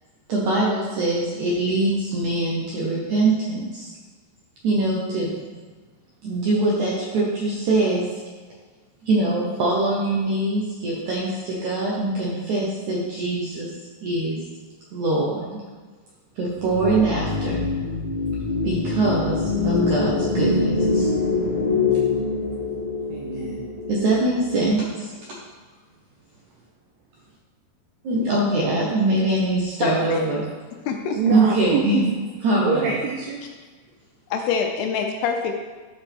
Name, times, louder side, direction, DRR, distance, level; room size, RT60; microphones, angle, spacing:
voice 1, 0.3-3.9 4.6-5.3 6.2-8.1 9.0-13.7 14.0-14.4 14.9-15.6 16.4-17.7 18.6-21.1 23.9-25.1 28.0-30.4 31.3-32.0 32.4-33.0, right 2 dB, 70° right, -4 dB, 1.9 m, -23 dB
sound 1, 16.6-24.9, left 3 dB, 40° left, 1.6 m, -24 dB
voice 2, 18.6-18.9 23.1-23.7 31.2-32.1 32.6-33.4, right 5 dB, 85° right, 0 dB, 2.0 m, -26 dB
voice 3, 29.8-30.2 30.9-31.2 34.3-35.6, left 6 dB, 80° left, 3 dB, 2.5 m, -25 dB
12.5 x 5.3 x 3.6 m, 1.4 s
omnidirectional pair, 4.9 m